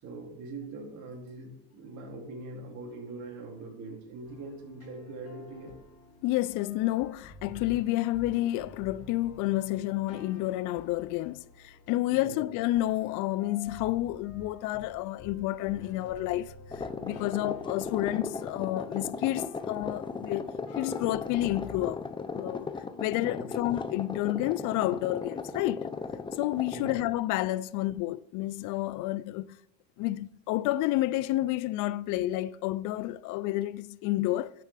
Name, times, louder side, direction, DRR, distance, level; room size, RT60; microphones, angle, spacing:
voice 1, 0.0-5.7 12.1-12.4 23.1-23.5 26.7-27.0, right 2 dB, 60° right, 2.8 m, -42 dB
sound 1, 4.3-21.9, left 3 dB, 50° left, 1.5 m, -50 dB
voice 2, 6.2-16.5 17.0-22.0 22.3-22.7 23.0-25.9 26.4-29.5 30.0-34.5, left 16 dB, 70° left, 0.5 m, -30 dB
sound 2, 16.7-27.1, left 4 dB, 15° left, 0.6 m, -37 dB
12.0 x 6.7 x 3.4 m
cardioid pair, 110°, 32 cm